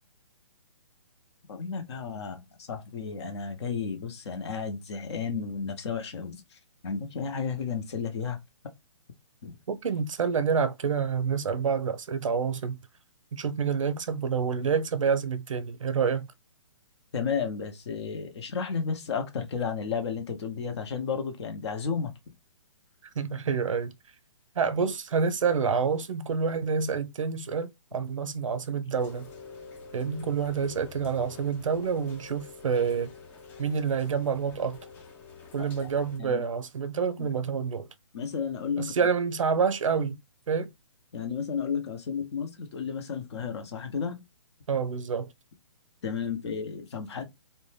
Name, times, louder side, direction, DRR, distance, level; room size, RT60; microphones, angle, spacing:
voice 1, 1.5-6.6 6.8-8.4 9.4-9.5 17.1-22.1 35.6-35.7 36.2-36.4 37.2-37.3 38.1-38.9 41.1-44.2 46.0-47.3, left 6 dB, 60° left, 0.7 m, -32 dB
voice 2, 9.7-12.8 13.3-16.3 23.2-23.9 24.6-29.3 29.9-33.1 33.6-34.8 35.5-37.9 38.8-40.2 40.5-40.7 44.7-45.3, right 6 dB, 80° right, 0.5 m, -28 dB
Rain, 28.9-36.2, left 5 dB, 10° left, 0.3 m, -47 dB
2.6 x 2.1 x 3.1 m
hypercardioid pair, 145°, 16 cm